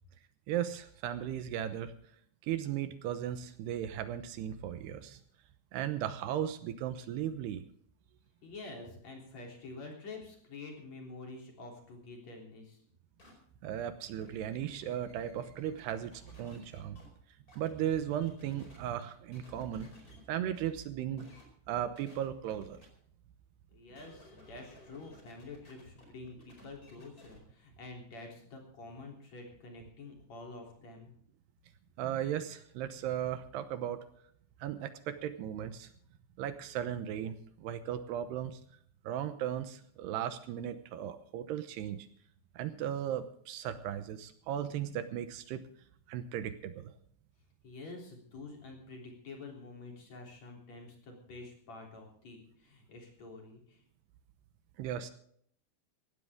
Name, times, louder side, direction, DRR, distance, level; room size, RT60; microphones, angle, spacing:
voice 1, 0.5-1.9 2.4-5.2 5.7-7.6 13.6-17.0 17.6-19.9 20.3-21.3 21.7-22.8 32.0-34.0 34.6-35.9 36.4-38.6 39.0-42.1 42.6-45.6 46.1-46.9 54.8-55.1, right 10 dB, 75° right, 10 dB, 3.0 m, -36 dB
voice 2, 8.4-12.8 23.7-31.1 47.6-53.8, left 3 dB, 40° left, 1 dB, 4.4 m, -48 dB
sound 1, 13.2-13.3 14.0-17.1 17.5-19.0 19.3-20.2 20.5-20.6 21.2-21.4 21.9-22.8 23.9-27.4, left 1 dB, 20° left, 4.8 m, -57 dB
17.5 x 15.5 x 3.7 m, 0.62 s
omnidirectional pair, 4.9 m